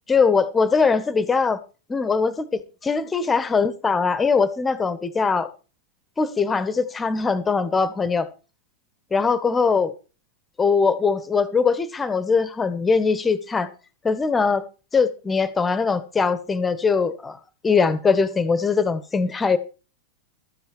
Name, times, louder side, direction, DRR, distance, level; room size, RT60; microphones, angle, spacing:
voice 1, 0.1-1.6 1.9-5.5 6.2-8.3 9.1-9.9 10.6-13.7 14.0-14.6 14.9-17.4 17.6-19.6, left 5 dB, 15° left, 15 dB, 1.5 m, -21 dB
13.5 x 9.3 x 4.6 m, 0.34 s
figure-of-eight pair, 90°, 0 cm